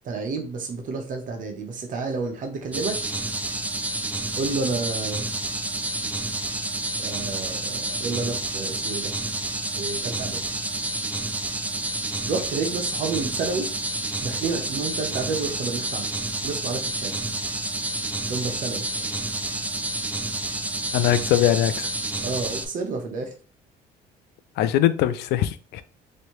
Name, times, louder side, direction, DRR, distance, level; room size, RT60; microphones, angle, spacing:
voice 1, 0.0-3.2 4.4-5.3 6.9-9.1 9.8-10.4 11.7-11.9 12.3-13.7 14.2-16.1 16.4-17.3 18.3-19.2 22.2-23.3, right 4 dB, 50° right, 0.9 m, -30 dB
sound 1, 2.7-22.7, right 2 dB, 10° right, 0.3 m, -29 dB
voice 2, 20.9-21.9 24.6-25.8, left 12 dB, 80° left, 0.4 m, -21 dB
3.2 x 2.7 x 3.0 m
cardioid pair, 110°, 17 cm